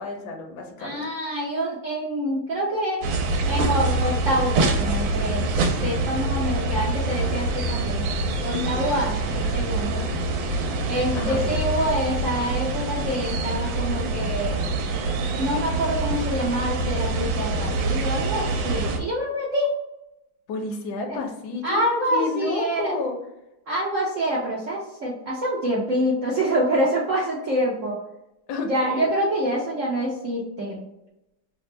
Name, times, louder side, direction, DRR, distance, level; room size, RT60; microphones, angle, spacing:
voice 1, 0.0-1.0 8.5-8.8 11.1-11.5 20.5-23.2 28.5-29.1, left 3 dB, 65° left, 2 dB, 1.1 m, -31 dB
voice 2, 0.8-3.0 3.4-5.4 5.8-8.0 8.4-10.1 10.9-14.5 15.4-19.7 21.1-21.2 21.6-22.9 23.7-28.0 28.6-30.8, right 1 dB, 65° right, -5 dB, 0.7 m, -26 dB
sound 1, 3.0-19.0, right 2 dB, 85° right, 1.4 m, -25 dB
3.4 x 2.1 x 4.2 m, 0.89 s
omnidirectional pair, 2.2 m